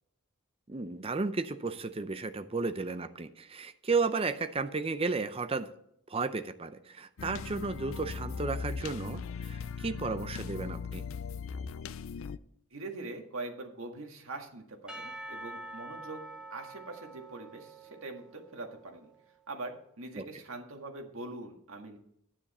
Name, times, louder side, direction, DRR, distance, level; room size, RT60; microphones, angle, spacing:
voice 1, 0.7-5.7 6.1-11.0 20.2-20.3, right 4 dB, 25° right, 9 dB, 0.5 m, -33 dB
sound 1, 7.2-12.4, left 5 dB, 60° left, 0.4 m, -39 dB
voice 2, 12.7-16.2 16.5-19.1 19.5-22.0, right 2 dB, 65° right, 3 dB, 1.9 m, -43 dB
Percussion / Church bell, 14.9-19.1, right 2 dB, 5° right, 1.0 m, -46 dB
9.8 x 9.8 x 4.3 m, 0.73 s
head